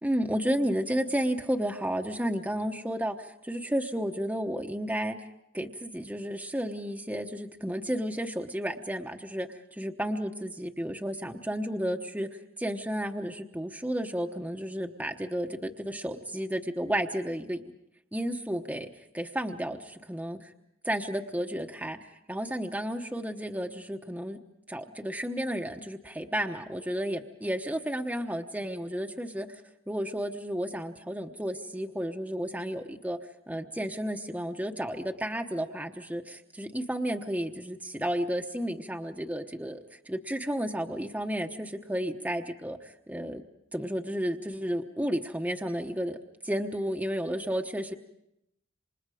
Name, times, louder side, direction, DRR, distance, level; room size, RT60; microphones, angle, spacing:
voice 1, 0.0-5.3 5.5-17.6 18.1-18.9 19.1-20.5 20.8-24.4 24.7-29.6 29.9-33.2 33.5-43.4 43.7-46.2 46.4-47.9, equal, 10° right, 4 dB, 1.0 m, -32 dB
28.5 x 26.0 x 4.9 m, 0.83 s
head